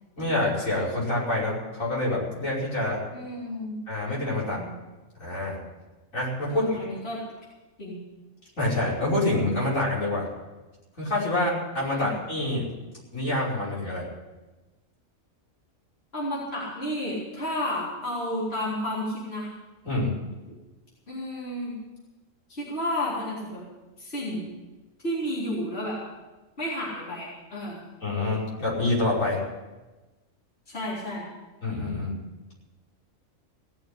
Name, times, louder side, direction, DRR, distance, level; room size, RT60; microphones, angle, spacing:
voice 1, 0.2-3.0 3.9-4.6 5.2-5.6 6.1-6.9 8.6-10.3 11.0-12.6 13.1-14.1 19.8-20.1 28.0-29.4 31.6-32.1, left 2 dB, 80° left, -5 dB, 6.0 m, -26 dB
voice 2, 3.1-3.7 4.4-4.7 6.5-7.2 7.8-8.0 11.9-12.1 16.1-19.5 21.1-21.7 22.5-23.6 24.0-24.5 25.0-26.0 26.6-27.8 30.7-31.3, left 1 dB, 50° left, -7 dB, 4.2 m, -31 dB
17.5 x 7.2 x 9.8 m, 1.2 s
omnidirectional pair, 1.4 m